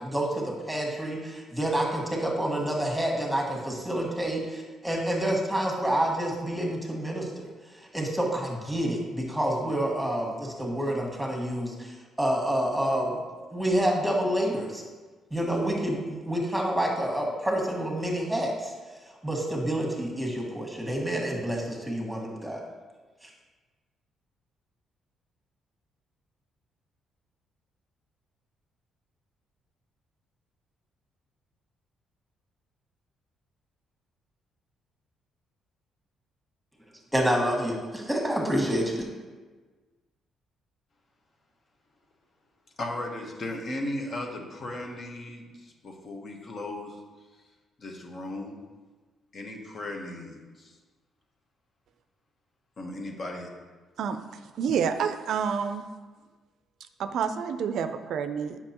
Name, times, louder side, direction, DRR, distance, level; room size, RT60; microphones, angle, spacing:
voice 1, 0.0-7.5 7.7-13.2 13.5-14.8 15.3-18.7 19.2-22.6 23.2-23.3 37.1-39.1, right 1 dB, 5° right, -1 dB, 1.6 m, -28 dB
voice 2, 42.8-47.0 47.8-48.6 49.3-50.8 52.8-53.5, left 1 dB, 45° left, 1 dB, 1.1 m, -36 dB
voice 3, 54.6-55.8 57.0-58.6, right 7 dB, 75° right, 9 dB, 0.4 m, -28 dB
7.6 x 5.9 x 2.9 m, 1.3 s
cardioid pair, 90°, 0 cm